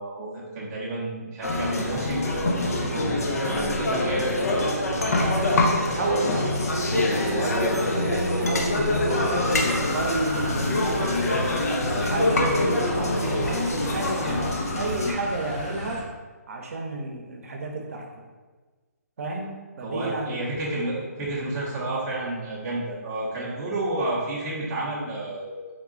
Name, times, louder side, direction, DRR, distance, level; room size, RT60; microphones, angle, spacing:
voice 1, 0.0-2.3 2.6-4.3 19.8-25.6, right 2 dB, 20° right, -7 dB, 0.7 m, -31 dB
sound 1, 1.4-15.1, left 1 dB, 65° left, 0.7 m, -25 dB
voice 2, 5.2-11.1 11.5-16.1 16.5-18.1 19.2-20.4, right 2 dB, 60° right, 1 dB, 0.7 m, -31 dB
Motor vehicle (road) / Siren, 9.1-16.0, left 1 dB, 40° left, 0.8 m, -35 dB
3.6 x 2.3 x 3.8 m, 1.4 s
hypercardioid pair, 160°, 9 cm